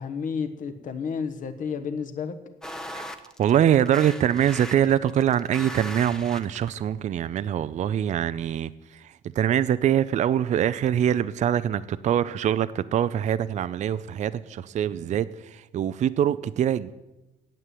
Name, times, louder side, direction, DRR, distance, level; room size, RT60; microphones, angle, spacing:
voice 1, 0.0-2.3, left 6 dB, 50° left, 8 dB, 1.3 m, -31 dB
sound 1, 2.6-6.8, equal, 5° left, 1.0 m, -38 dB
voice 2, 3.4-16.9, right 10 dB, 45° right, 15 dB, 0.5 m, -24 dB
9.0 x 8.2 x 9.4 m, 1.0 s
cardioid pair, 110°, 17 cm